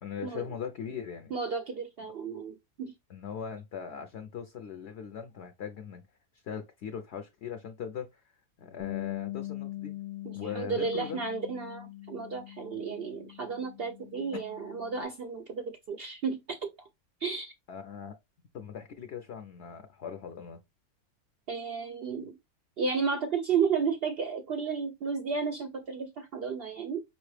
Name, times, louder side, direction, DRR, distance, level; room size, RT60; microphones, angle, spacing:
voice 1, 0.0-1.3 3.1-6.0 6.4-8.2 8.6-9.9 10.3-11.2 17.7-18.2 18.5-20.6, left 7 dB, 60° left, 0.8 m, -40 dB
voice 2, 1.3-2.9 10.3-16.7 17.2-17.5 21.5-22.3 22.8-27.0, right 5 dB, 65° right, 0.6 m, -33 dB
Bass guitar, 8.8-15.0, left 16 dB, 10° right, 0.5 m, -41 dB
5.1 x 3.0 x 3.2 m
omnidirectional pair, 1.6 m